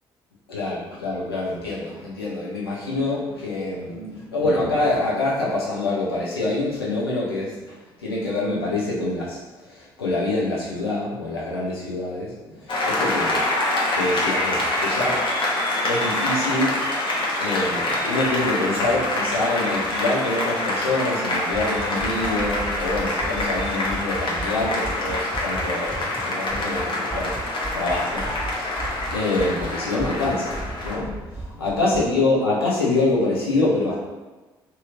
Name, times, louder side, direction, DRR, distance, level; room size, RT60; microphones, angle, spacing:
voice 1, 0.5-13.4 13.9-15.2 15.9-16.8 17.4-27.3 27.7-34.0, left 2 dB, 85° left, -6 dB, 0.6 m, -26 dB
Applause, 12.7-31.0, left 1 dB, 40° left, 0.7 m, -25 dB
sound 1, 21.5-26.2 26.5-26.8 27.1-29.7 30.0-32.0, right 2 dB, 5° left, 0.7 m, -34 dB
2.8 x 2.7 x 2.4 m, 1.2 s
figure-of-eight pair, 45°, 12 cm